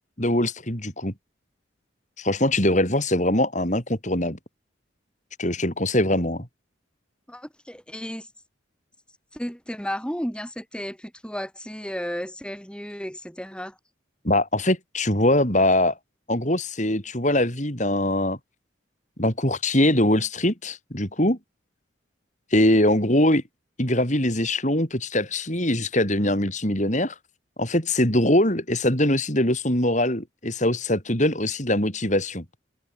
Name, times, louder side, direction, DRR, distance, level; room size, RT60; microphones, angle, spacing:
voice 1, 0.2-1.1 2.2-4.4 5.4-6.5 14.2-16.0 16.3-18.4 19.2-21.4 22.5-23.4 23.8-27.2 27.6-32.4, left 1 dB, 40° left, 7.1 m, -22 dB
voice 2, 7.3-8.3 9.3-13.8, equal, 5° left, 7.3 m, -33 dB
head